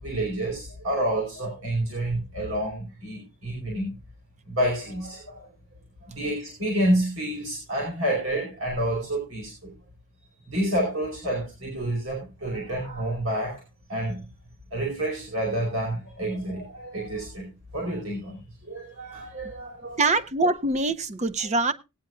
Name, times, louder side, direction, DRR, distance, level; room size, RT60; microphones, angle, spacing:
voice 1, 0.0-3.9 4.5-5.5 6.1-9.7 10.5-13.6 13.9-14.2 14.7-18.4 18.7-20.0, right 1 dB, 65° right, 4.6 m, -29 dB
voice 2, 20.0-21.7, right 3 dB, 30° right, 0.7 m, -24 dB
18.5 x 9.4 x 2.4 m
head